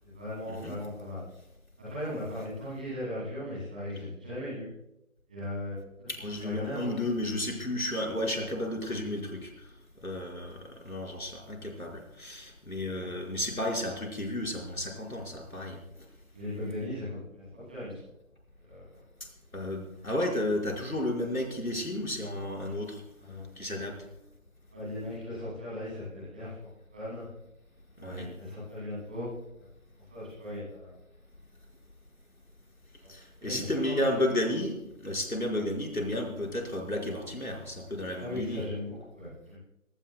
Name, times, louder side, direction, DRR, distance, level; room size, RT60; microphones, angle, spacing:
voice 1, 0.0-1.2 1.8-4.7 5.3-5.8 6.4-7.0 12.9-13.2 16.3-17.9 18.6-18.8 23.2-23.8 24.7-27.2 28.0-29.3 30.1-30.9 33.4-34.1 38.2-39.6, left 1 dB, 5° right, -10 dB, 2.8 m, -38 dB
voice 2, 6.1-9.7 10.0-15.8 19.5-23.0 23.6-23.9 28.0-28.3 33.1-38.7, left 1 dB, 80° left, 1 dB, 5.5 m, -32 dB
23.5 x 18.0 x 2.3 m, 0.85 s
figure-of-eight pair, 170°, 42 cm